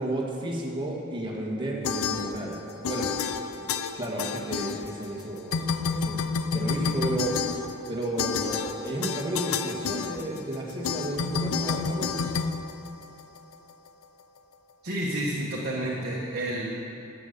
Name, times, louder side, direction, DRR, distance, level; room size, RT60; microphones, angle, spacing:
voice 1, 0.0-3.1 3.6-3.7 3.9-5.5 5.9-6.2 6.5-7.6 7.9-12.2, right 1 dB, 25° right, -3 dB, 1.8 m, -32 dB
sound 1, 1.8-2.6 2.8-5.2 5.5-13.4, left 5 dB, 80° left, 0.6 m, -30 dB
voice 2, 14.8-16.7, right 1 dB, 50° right, -5 dB, 1.3 m, -30 dB
11.0 x 8.2 x 6.8 m, 2.8 s
head